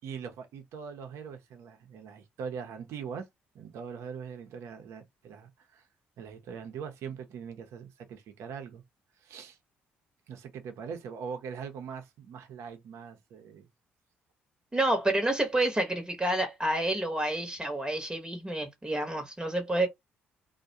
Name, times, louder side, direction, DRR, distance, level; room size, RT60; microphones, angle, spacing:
voice 1, 0.0-3.3 3.5-5.9 6.2-8.8 9.1-9.6 10.3-13.7, right 6 dB, 70° right, 0.7 m, -41 dB
voice 2, 14.7-19.9, right 1 dB, 15° right, 0.9 m, -29 dB
2.2 x 2.2 x 2.7 m
hypercardioid pair, 55°, 5 cm